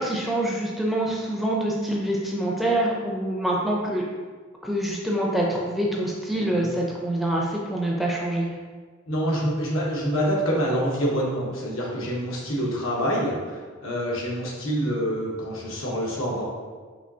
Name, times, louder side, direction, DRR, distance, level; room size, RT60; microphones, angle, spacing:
voice 1, 0.0-4.0 4.6-8.5, right 1 dB, ahead, -3 dB, 0.4 m, -25 dB
voice 2, 9.1-16.4, equal, 80° left, -4 dB, 1.1 m, -26 dB
5.2 x 3.0 x 2.7 m, 1.5 s
head